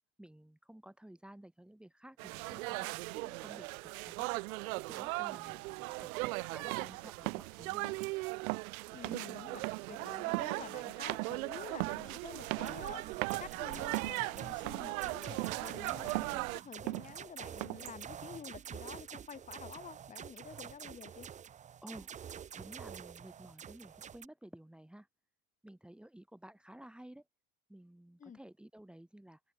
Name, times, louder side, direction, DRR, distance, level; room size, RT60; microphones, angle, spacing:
voice 1, 0.0-3.7 4.0-4.3 4.8-8.0 20.5-20.6 21.8-22.1 22.6-25.1 25.6-27.3 27.7-29.4, right 1 dB, ahead, 3.9 m, -53 dB
sound 1, 2.2-16.6, right 25 dB, 80° right, 2.7 m, -39 dB
sound 2, 6.2-6.4 6.7-6.9 7.2-7.6 7.8-8.1 8.4-8.7 9.0-9.3 9.6-10.0 10.3-10.7 11.1-11.4 11.8-12.1 12.5-12.9 13.2-13.4 13.9-14.3 14.7-15.0 15.4-15.7 15.9-16.4 16.9-17.1 17.6-18.0, right 33 dB, 60° right, 0.5 m, -39 dB
voice 2, 8.9-21.3 28.2-28.4, left 7 dB, 20° left, 4.3 m, -49 dB
sound 3, 12.4-24.3, right 8 dB, 15° right, 1.2 m, -48 dB
cardioid pair, 180°, 41 cm